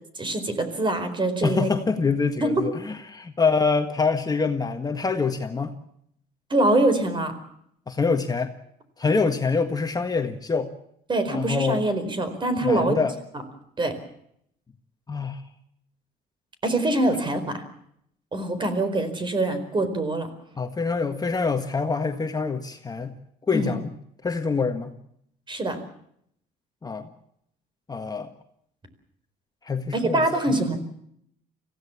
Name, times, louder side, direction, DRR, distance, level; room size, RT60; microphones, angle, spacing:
voice 1, 0.2-1.7 2.4-2.6 6.5-7.3 11.1-13.0 13.8-13.9 16.6-17.6 18.3-20.3 23.5-23.7 25.5-25.8 29.9-30.8, right 2 dB, 30° right, 10 dB, 4.5 m, -24 dB
voice 2, 1.4-5.7 7.9-8.5 9.0-10.7 11.3-11.8 12.6-13.1 15.1-15.4 20.5-23.1 23.5-23.9 24.2-24.9 26.8-27.1 27.9-28.3 29.6-30.7, left 4 dB, 20° left, 6 dB, 1.6 m, -25 dB
25.5 x 16.0 x 7.2 m, 0.71 s
cardioid pair, 110°, 17 cm